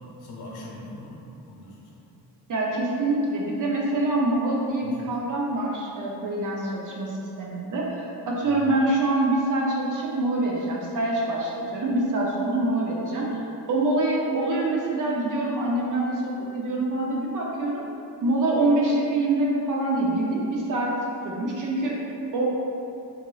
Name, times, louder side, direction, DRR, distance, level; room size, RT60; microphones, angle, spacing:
voice 1, 0.0-2.1 4.8-5.2 8.4-8.7, left 1 dB, 65° left, -4 dB, 0.7 m, -42 dB
voice 2, 2.5-13.3 13.7-17.8 18.2-20.9 21.2-21.9 22.3-22.4, right 2 dB, 50° right, -3 dB, 0.5 m, -25 dB
3.6 x 3.0 x 2.3 m, 2.7 s
wide cardioid pair, 165°, 42 cm